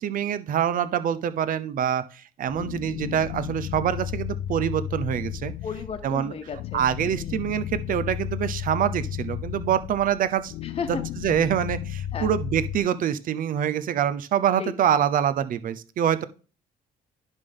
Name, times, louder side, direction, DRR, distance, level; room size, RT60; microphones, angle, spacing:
voice 1, 0.0-5.5 6.0-6.3 6.7-10.5 10.9-11.0 11.2-16.3, right 9 dB, 55° right, 14 dB, 0.8 m, -25 dB
sound 1, 2.5-12.8, left 11 dB, 80° left, 0.5 m, -34 dB
voice 2, 5.6-7.5 10.6-11.0 12.1-12.3 14.6-14.7, left 5 dB, 35° left, 5 dB, 1.1 m, -34 dB
10.5 x 3.6 x 5.5 m, 0.35 s
cardioid pair, 110°, 17 cm